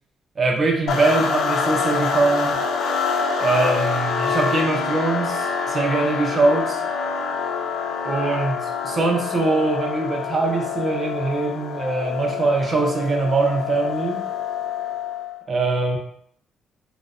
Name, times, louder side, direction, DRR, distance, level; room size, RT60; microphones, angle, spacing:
voice 1, 0.4-2.6 3.4-6.8 8.0-14.2 15.5-16.0, right 3 dB, 40° right, 1 dB, 0.6 m, -22 dB
sound 1, 0.9-15.4, left 5 dB, 75° left, 0.3 m, -26 dB
2.5 x 2.1 x 2.4 m, 0.66 s
cardioid pair, 90°, 0 cm